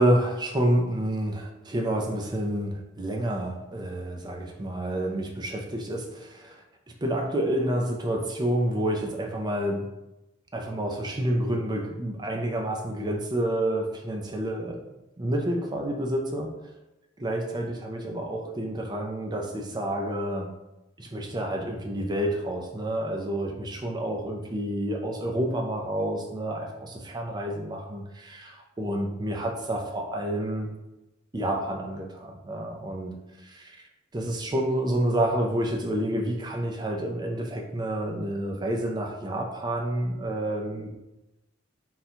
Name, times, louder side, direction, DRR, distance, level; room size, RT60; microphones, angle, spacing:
voice 1, 0.0-6.6 7.0-9.9 10.5-14.8 15.2-16.5 17.2-20.5 21.0-30.7 31.3-33.2 33.4-33.8 34.1-40.9, right 1 dB, 20° right, 1 dB, 0.5 m, -29 dB
3.9 x 2.3 x 4.3 m, 0.97 s
head